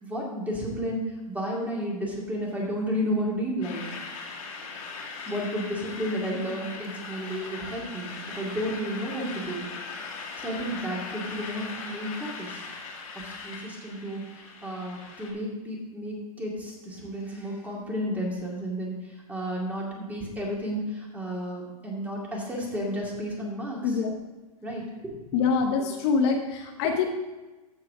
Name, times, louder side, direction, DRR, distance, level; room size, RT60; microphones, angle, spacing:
voice 1, 0.0-3.9 5.3-9.7 10.4-12.6 13.1-14.4 14.6-24.0 24.6-25.4 25.8-25.9, equal, 10° right, -3 dB, 2.4 m, -32 dB
sound 1, 3.6-15.3, left 4 dB, 65° left, 2.6 m, -39 dB
voice 2, 23.8-24.1 25.3-27.1, left 5 dB, 45° left, 3 dB, 1.0 m, -25 dB
14.5 x 4.8 x 4.9 m, 1.2 s
hypercardioid pair, 130°, 20 cm